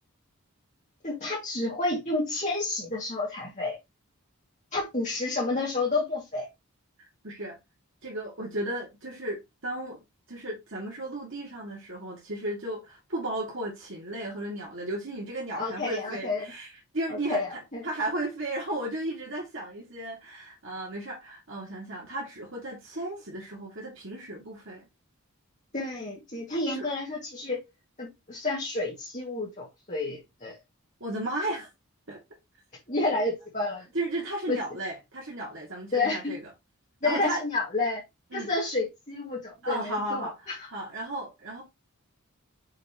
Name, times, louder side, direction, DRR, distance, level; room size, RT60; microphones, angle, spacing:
voice 1, 1.0-3.8 4.7-6.5 15.5-16.5 17.1-17.8 25.7-27.6 28.0-30.6 32.9-33.8 34.5-34.6 35.9-36.3 37.0-38.0 38.3-40.7, left 2 dB, 35° left, 2.1 m, -30 dB
voice 2, 7.2-7.6 8.0-10.0 10.3-17.4 17.8-24.8 26.7-26.9 31.0-31.7 32.1-32.2 33.9-36.4 37.0-37.4 38.3-38.5 39.6-41.6, right 1 dB, 55° right, 2.4 m, -34 dB
6.5 x 6.0 x 3.0 m
head